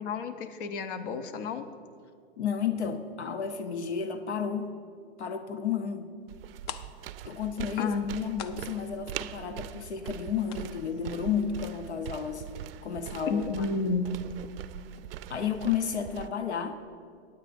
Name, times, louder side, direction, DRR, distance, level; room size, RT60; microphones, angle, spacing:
voice 1, 0.0-1.7 7.8-8.2 13.3-14.1, left 4 dB, 55° left, 9 dB, 0.9 m, -31 dB
voice 2, 2.4-4.7 5.2-6.1 7.2-12.4 12.8-13.7 15.3-16.8, left 7 dB, 85° left, 8 dB, 0.8 m, -32 dB
sound 1, 6.3-6.4 6.6-12.2 12.4-12.5 13.0-13.2 13.5-13.6, left 9 dB, 25° left, 0.4 m, -46 dB
sound 2, 6.3-16.3, right 11 dB, 60° right, 0.4 m, -42 dB
17.0 x 9.7 x 2.6 m, 2.2 s
hypercardioid pair, 115°, 33 cm